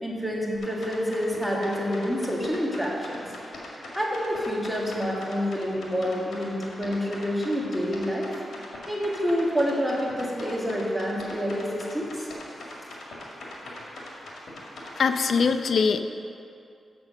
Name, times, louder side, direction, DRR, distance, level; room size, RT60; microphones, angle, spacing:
voice 1, 0.0-3.2 3.7-12.3, equal, 5° right, -3 dB, 1.7 m, -28 dB
sound 1, 0.5-15.5, left 1 dB, 85° left, 2.1 m, -41 dB
voice 2, 15.0-16.0, left 5 dB, 70° left, 9 dB, 0.5 m, -22 dB
7.6 x 7.2 x 6.5 m, 2.5 s
cardioid pair, 85°, 0 cm